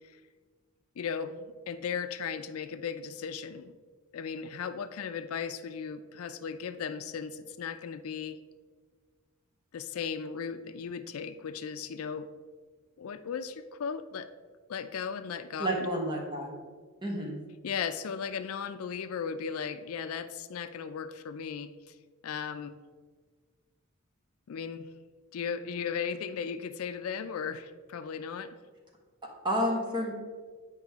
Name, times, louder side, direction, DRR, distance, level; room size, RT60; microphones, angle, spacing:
voice 1, 1.0-3.7 4.1-8.4 9.7-12.3 13.0-14.3 14.7-15.7 17.6-21.7 22.2-22.8 24.5-24.9 25.3-28.6, left 6 dB, 80° left, 11 dB, 0.4 m, -36 dB
voice 2, 15.6-16.6 17.0-17.4 29.4-30.1, equal, 20° right, 0 dB, 1.2 m, -30 dB
8.2 x 5.0 x 3.5 m, 1.5 s
head